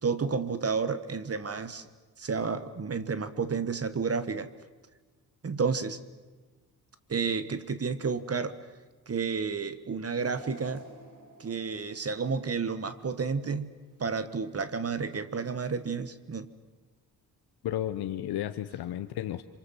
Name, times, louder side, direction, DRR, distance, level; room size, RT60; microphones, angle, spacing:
voice 1, 0.0-1.9 2.2-4.5 5.4-6.0 7.1-8.6 9.1-10.9 11.4-13.7 14.0-16.5, right 5 dB, 40° right, 12 dB, 1.5 m, -31 dB
sound 1, 10.2-13.4 13.8-13.9 15.0-15.1, right 2 dB, 55° right, 5.2 m, -51 dB
voice 2, 17.6-19.4, left 12 dB, 80° left, 10 dB, 0.9 m, -33 dB
26.5 x 24.0 x 7.5 m, 1.3 s
cardioid pair, 70°, 38 cm